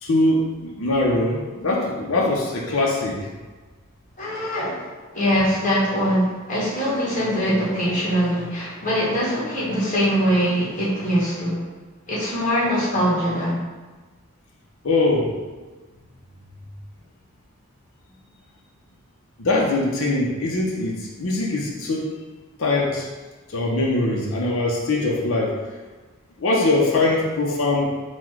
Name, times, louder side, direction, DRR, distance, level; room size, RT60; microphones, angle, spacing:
voice 1, 0.0-3.3 14.8-15.4 19.4-22.1 22.6-23.1 23.5-25.6 26.4-27.9, left 2 dB, 65° left, -3 dB, 0.7 m, -22 dB
voice 2, 4.2-4.8 5.1-11.6 12.1-13.6, equal, 35° left, -7 dB, 1.4 m, -22 dB
4.2 x 2.2 x 4.5 m, 1.3 s
head